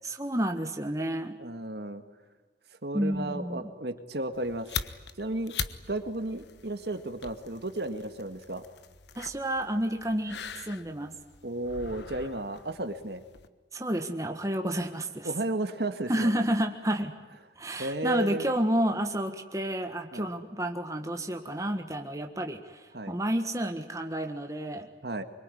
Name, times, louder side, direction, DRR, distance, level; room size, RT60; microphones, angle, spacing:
voice 1, 0.0-1.4 2.9-3.7 9.1-11.1 13.7-15.3 16.1-17.1 17.6-24.9, right 1 dB, 20° right, 4 dB, 1.6 m, -30 dB
voice 2, 1.4-2.0 2.8-4.7 5.2-5.6 5.9-8.6 11.4-13.2 15.2-16.3 17.8-18.5 20.1-20.3 22.9-23.2 25.0-25.2, right 1 dB, 60° right, 8 dB, 1.9 m, -33 dB
sound 1, 4.3-13.5, left 7 dB, 70° left, 1.3 m, -42 dB
24.5 x 22.5 x 9.9 m, 1.3 s
head